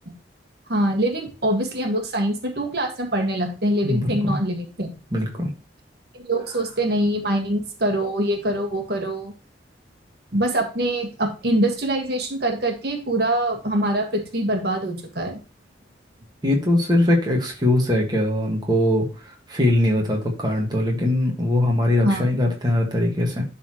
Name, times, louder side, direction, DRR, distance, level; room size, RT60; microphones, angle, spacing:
voice 1, 0.7-4.9 6.2-9.3 10.3-15.4 22.0-22.3, right 1 dB, 55° right, 4 dB, 1.7 m, -24 dB
voice 2, 3.8-4.4 5.1-5.5 16.4-23.4, left 1 dB, 20° right, -1 dB, 1.6 m, -21 dB
11.5 x 4.2 x 3.0 m, 0.34 s
head